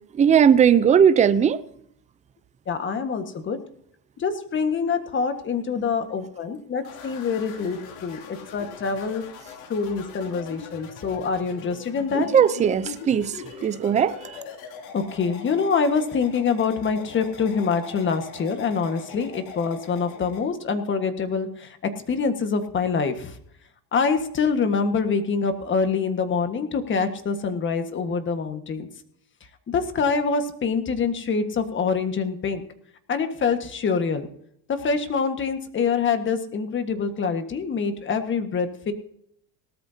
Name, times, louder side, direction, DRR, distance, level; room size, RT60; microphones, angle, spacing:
voice 1, 0.2-1.6 12.1-13.3 13.6-14.1, right 8 dB, 20° right, 0.5 m, -18 dB
voice 2, 2.7-3.6 4.2-9.3 9.7-12.3 14.9-23.3 23.9-28.9 29.7-32.6 33.1-34.3 34.7-38.9, left 5 dB, 30° left, 1.6 m, -25 dB
sound 1, 6.8-20.4, left 5 dB, 90° left, 3.2 m, -42 dB
18.5 x 13.0 x 2.8 m
cardioid pair, 135°, 41 cm